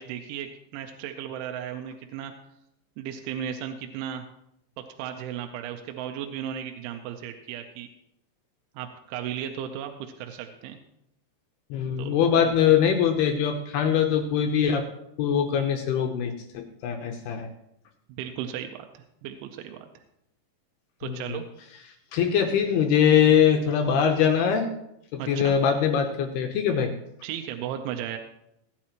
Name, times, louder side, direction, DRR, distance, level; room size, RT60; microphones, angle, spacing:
voice 1, 0.0-2.3 3.0-4.2 5.0-7.9 8.8-10.8 12.0-12.5 18.2-20.0 21.0-21.5 25.2-25.6 27.2-28.2, right 9 dB, 85° right, 4 dB, 3.2 m, -35 dB
voice 2, 11.7-14.9 15.2-17.5 21.1-21.4 22.1-24.7 25.1-26.9, left 8 dB, 80° left, 4 dB, 2.4 m, -22 dB
17.0 x 10.5 x 3.0 m, 0.79 s
omnidirectional pair, 5.4 m